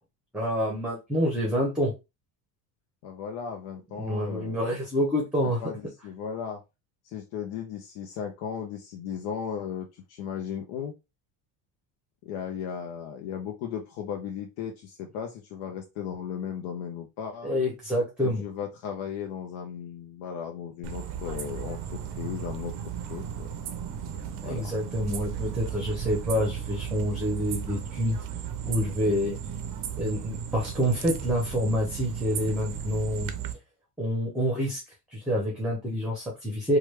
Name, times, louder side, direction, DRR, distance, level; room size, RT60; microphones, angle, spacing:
voice 1, 0.3-1.9 4.0-5.6 17.4-18.4 24.5-28.2 28.7-29.4 30.0-33.3 34.0-34.8 35.1-36.8, equal, ahead, -1 dB, 0.7 m, -27 dB
voice 2, 3.0-4.6 5.6-6.6 7.0-10.9 12.2-17.5 18.2-23.5 24.4-24.7, left 8 dB, 85° left, 2 dB, 0.8 m, -36 dB
sound 1, 20.8-33.5, right 8 dB, 45° right, 0.5 m, -35 dB
3.1 x 2.4 x 3.1 m, 0.25 s
cardioid pair, 150°, 47 cm